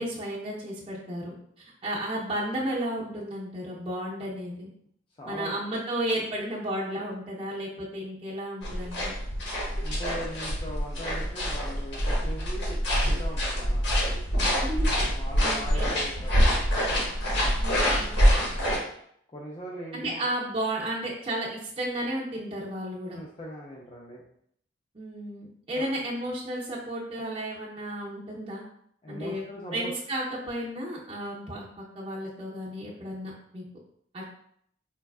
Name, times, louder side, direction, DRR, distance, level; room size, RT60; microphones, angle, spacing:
voice 1, 0.0-4.7 5.3-9.1 14.5-14.9 15.4-15.9 17.6-18.2 19.9-23.2 24.9-28.6 29.1-29.4 29.7-33.7 34.1-34.3, right 1 dB, 30° right, -6 dB, 0.5 m, -33 dB
voice 2, 5.2-5.5 9.8-14.0 15.0-16.8 18.5-18.8 19.3-20.2 23.0-24.2 25.7-25.9 29.0-29.9, equal, 25° left, -5 dB, 0.4 m, -40 dB
sound 1, 8.6-18.8, equal, 65° left, 0.9 m, -25 dB
4.2 x 2.3 x 2.3 m, 0.67 s
head